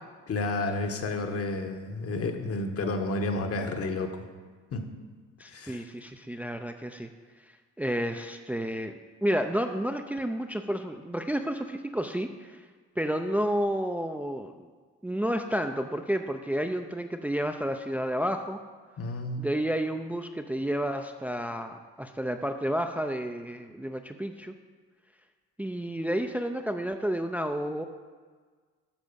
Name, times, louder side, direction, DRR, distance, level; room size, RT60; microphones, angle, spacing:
voice 1, 0.3-4.3 4.7-4.9 5.5-5.8 19.0-19.4, left 2 dB, 50° left, 5 dB, 1.4 m, -31 dB
voice 2, 5.4-7.1 7.8-8.9 9.2-12.7 13.0-14.7 15.0-18.6 19.4-24.5 25.6-27.8, equal, 5° right, 5 dB, 0.5 m, -31 dB
12.0 x 4.8 x 6.9 m, 1.5 s
cardioid pair, 90°, 30 cm